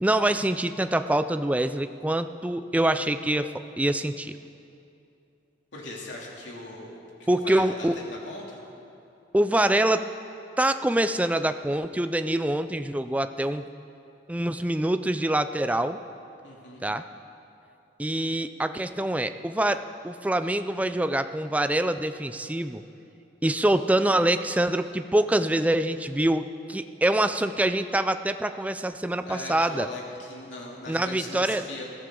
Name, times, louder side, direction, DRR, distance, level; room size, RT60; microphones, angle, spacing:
voice 1, 0.0-3.5 3.8-4.3 7.3-8.0 9.3-10.1 10.6-13.6 14.3-16.0 16.8-17.0 18.0-22.8 23.4-29.9 30.9-31.7, right 1 dB, 10° right, 10 dB, 0.4 m, -25 dB
voice 2, 5.7-8.6 16.4-16.8 29.3-31.8, left 2 dB, 75° left, -3 dB, 2.8 m, -39 dB
21.0 x 14.5 x 3.8 m, 2.7 s
head